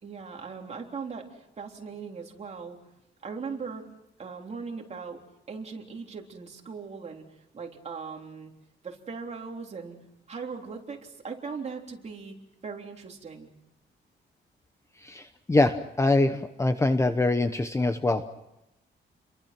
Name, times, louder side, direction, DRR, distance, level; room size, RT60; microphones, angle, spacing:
voice 1, 0.0-2.8 3.2-3.9 4.2-5.2 5.5-7.2 7.5-8.5 8.8-10.0 10.3-12.4 12.6-13.5, right 5 dB, 35° right, 1 dB, 3.6 m, -39 dB
voice 2, 15.0-18.2, left 2 dB, 15° left, 8 dB, 1.0 m, -24 dB
30.0 x 23.0 x 6.0 m, 0.90 s
wide cardioid pair, 175°, 20 cm